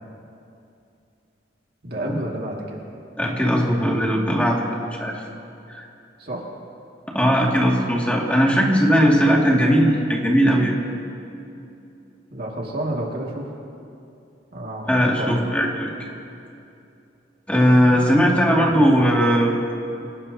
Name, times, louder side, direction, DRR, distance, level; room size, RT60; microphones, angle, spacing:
voice 1, 1.8-2.8 6.2-6.4 7.3-7.5 12.3-13.5 14.5-14.9 15.1-15.5 18.6-18.9, right 1 dB, 60° right, -3 dB, 2.2 m, -30 dB
voice 2, 3.2-5.2 5.7-5.9 7.1-10.7 14.9-15.9 17.5-19.7, equal, 5° left, -3 dB, 2.2 m, -18 dB
26.5 x 18.5 x 2.8 m, 2.7 s
head